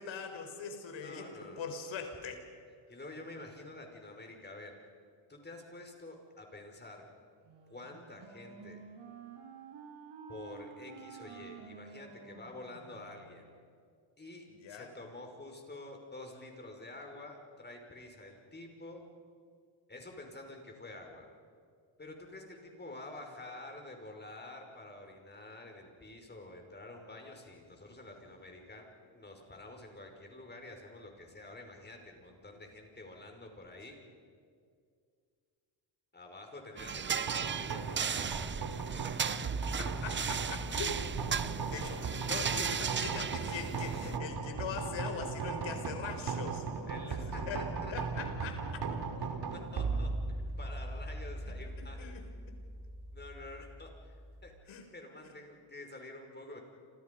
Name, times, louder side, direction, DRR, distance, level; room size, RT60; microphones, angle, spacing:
voice 1, 0.0-2.4 14.5-14.9 39.3-39.4 39.8-41.0 41.4-46.6 47.3-47.6 47.9-48.8 51.5-52.3 54.7-54.9, left 5 dB, 65° left, 5 dB, 4.7 m, -42 dB
voice 2, 1.0-1.8 2.9-4.8 5.3-7.1 7.7-8.8 10.3-13.5 14.2-19.0 19.9-21.3 22.0-34.0 36.1-38.6 46.9-47.9 49.2-52.1 53.1-54.1 54.4-54.5 54.9-56.6, left 2 dB, 20° left, 3 dB, 5.7 m, -49 dB
Wind instrument woodwind instrument, 7.4-13.6, right 5 dB, 75° right, 7.6 m, -51 dB
sound 1, 36.8-44.2, right 7 dB, 25° right, 0.6 m, -36 dB
sound 2, 37.3-54.5, right 4 dB, 50° right, 2.9 m, -38 dB
28.5 x 27.5 x 5.5 m, 2.2 s
cardioid pair, 95°, 50 cm